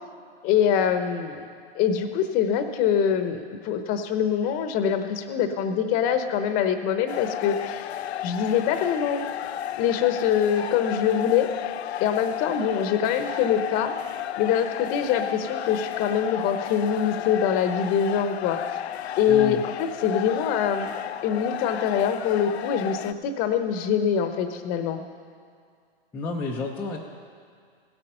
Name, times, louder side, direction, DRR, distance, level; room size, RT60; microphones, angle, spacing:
voice 1, 0.4-1.5 1.7-7.9 8.2-9.3 9.8-11.5 12.0-13.9 14.4-18.8 19.2-20.9 21.2-25.0, left 8 dB, 25° left, 8 dB, 0.8 m, -24 dB
sound 1, 7.1-23.1, left 11 dB, 75° left, 0.5 m, -33 dB
voice 2, 19.3-19.6 26.1-27.0, left 2 dB, 5° left, -3 dB, 0.4 m, -30 dB
16.0 x 8.8 x 5.5 m, 2.1 s
hypercardioid pair, 140°, 33 cm